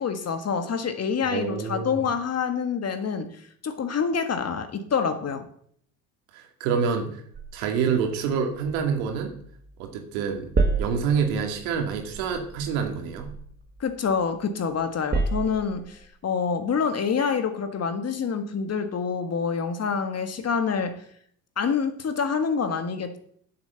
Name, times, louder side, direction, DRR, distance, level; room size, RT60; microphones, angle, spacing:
voice 1, 0.0-3.3 3.6-5.4 13.8-21.0 21.6-23.2, left 6 dB, 35° left, 8 dB, 1.6 m, -27 dB
voice 2, 1.3-2.0 6.3-7.1 7.5-9.3 9.8-10.5 10.8-13.3, right 6 dB, 75° right, 4 dB, 2.3 m, -27 dB
sound 1, 7.3-9.9 10.2-14.4 14.8-16.1, right 3 dB, 20° right, 1.6 m, -31 dB
8.8 x 7.0 x 7.0 m, 0.63 s
hypercardioid pair, 80°, 44 cm